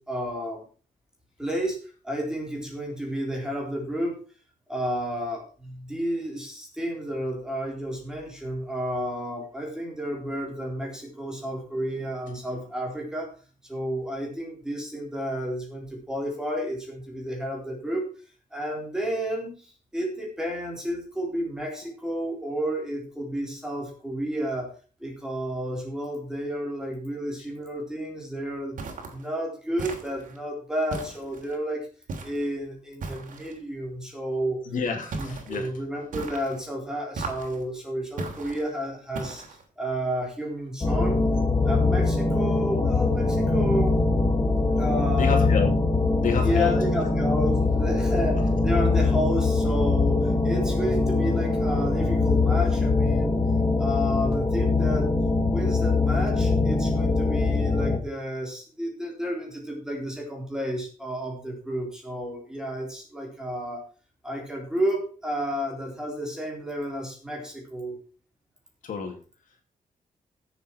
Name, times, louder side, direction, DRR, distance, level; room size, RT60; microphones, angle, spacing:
voice 1, 0.1-0.6 1.4-4.2 4.7-13.3 13.6-18.1 18.5-24.7 25.0-28.8 29.1-31.9 32.2-34.6 35.1-39.4 39.8-41.2 41.6-44.0 44.8-45.5 46.4-53.4 53.8-55.1 55.5-63.8 64.2-68.0, equal, 5° right, 0 dB, 3.7 m, -31 dB
sound 1, 28.8-29.2 29.8-30.4 30.9-31.6 32.1-32.5 33.0-33.6 35.1-35.6 36.1-36.6 37.1-37.6 38.2-38.6 39.1-39.6, right 3 dB, 80° right, 3.0 m, -37 dB
voice 2, 34.7-35.7 45.2-45.7 46.2-46.7 48.3-48.4 48.9-49.0 68.8-69.2, left 5 dB, 75° left, 3 dB, 2.8 m, -29 dB
sound 2, 40.8-58.0, left 3 dB, 25° left, 1.7 m, -22 dB
15.5 x 7.3 x 4.6 m, 0.38 s
wide cardioid pair, 180°, 13 cm